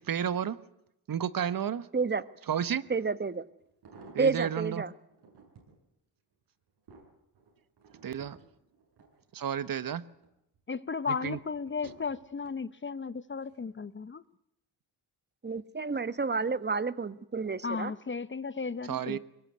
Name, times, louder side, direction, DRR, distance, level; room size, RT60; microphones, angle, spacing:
voice 1, 0.1-0.6 1.1-1.9 2.5-2.8 4.1-4.8 8.0-8.4 9.3-10.0 11.2-11.4 18.9-19.2, right 9 dB, 55° right, 1.3 m, -31 dB
sound 1, 2.8-2.9 3.6-4.6 5.1-5.8 6.3-9.7 10.1-10.6 11.2-12.6 13.4-13.7 14.0-14.1, right 3 dB, 80° right, 8.0 m, -55 dB
voice 2, 2.9-3.4 4.2-4.9 15.4-17.9, right 4 dB, 25° right, 1.4 m, -30 dB
voice 3, 10.7-14.2 17.6-19.2, left 5 dB, 30° left, 0.9 m, -35 dB
23.5 x 20.0 x 9.4 m
cardioid pair, 90°, 40 cm